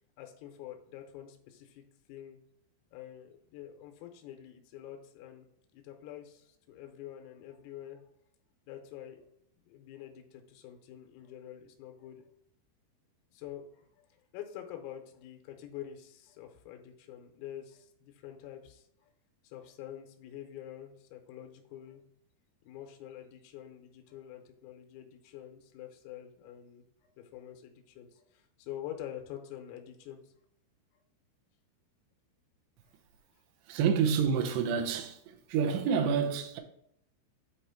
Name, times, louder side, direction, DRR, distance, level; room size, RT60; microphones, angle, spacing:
voice 1, 0.2-1.8 2.1-2.4 2.9-5.5 5.7-8.0 8.7-9.3 9.7-12.3 13.3-14.1 14.3-18.9 19.4-22.0 22.7-30.3, left 11 dB, 85° left, 3.5 m, -46 dB
voice 2, 33.7-36.6, right 6 dB, 75° right, 2.8 m, -28 dB
8.0 x 3.0 x 5.6 m
omnidirectional pair, 5.9 m